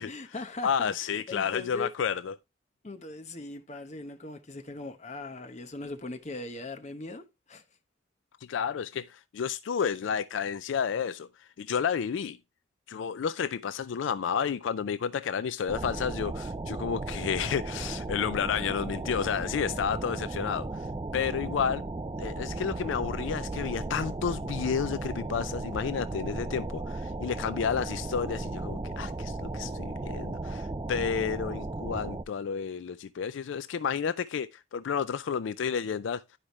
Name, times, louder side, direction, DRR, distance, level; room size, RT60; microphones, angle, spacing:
voice 1, 0.0-1.9 2.8-7.6, left 2 dB, 35° left, 0.9 m, -40 dB
voice 2, 0.6-2.3 8.5-12.4 12.9-20.9 21.1-21.8 22.2-36.2, left 7 dB, 75° left, 0.4 m, -31 dB
sound 1, 15.7-32.2, right 2 dB, 20° right, 0.4 m, -35 dB
11.5 x 5.0 x 3.0 m
head